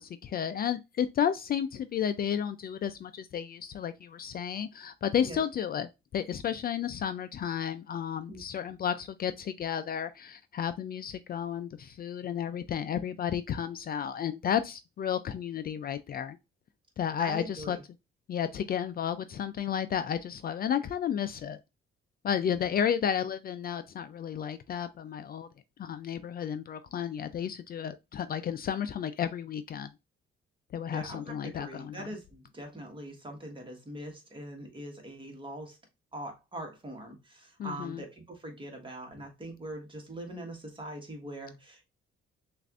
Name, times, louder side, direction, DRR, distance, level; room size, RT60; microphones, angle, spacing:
voice 1, 0.0-16.4 17.0-17.8 18.3-21.6 22.2-25.5 25.8-29.9 30.7-32.1 37.6-38.0, left 8 dB, 45° left, 0.4 m, -32 dB
voice 2, 8.3-8.7 17.2-17.8 22.5-22.8 30.9-35.8 36.1-41.9, right 1 dB, 25° right, 1.4 m, -42 dB
6.4 x 2.5 x 2.4 m
cardioid pair, 100°, 21 cm